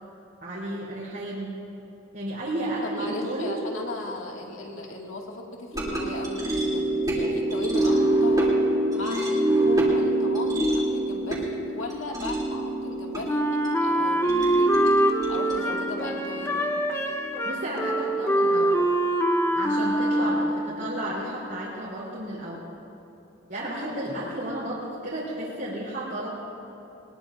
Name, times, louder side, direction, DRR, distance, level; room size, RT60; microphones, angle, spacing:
voice 1, 0.4-1.5 2.1-3.6 17.4-18.7 19.5-22.6 23.5-26.3, right 1 dB, 55° right, -10 dB, 3.6 m, -32 dB
voice 2, 2.8-8.5 8.9-16.7 20.2-20.5 24.1-24.4, left 2 dB, 90° left, 0 dB, 2.1 m, -37 dB
sound 1, 5.7-18.1, right 1 dB, 20° right, 3.0 m, -26 dB
Wind instrument woodwind instrument, 13.3-20.8, right 1 dB, 10° left, 0.8 m, -24 dB
21.5 x 20.5 x 2.6 m, 2.9 s
head